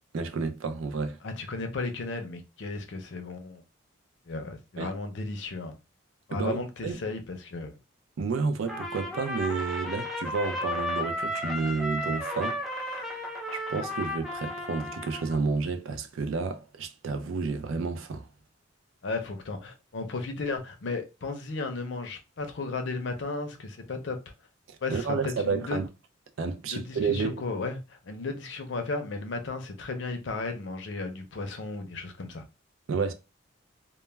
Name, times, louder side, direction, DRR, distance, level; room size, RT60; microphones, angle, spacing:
voice 1, 0.1-1.2 4.8-4.9 6.3-7.0 8.2-12.6 13.5-18.3 24.9-25.9 26.4-27.4 32.9-33.1, right 4 dB, 75° right, 0.4 m, -30 dB
voice 2, 1.2-3.6 4.3-5.7 6.3-7.7 19.0-24.2 24.8-25.8 26.7-32.4, left 3 dB, 60° left, 0.5 m, -34 dB
Trumpet, 8.7-15.4, left 1 dB, ahead, 0.4 m, -34 dB
2.2 x 2.1 x 3.1 m
head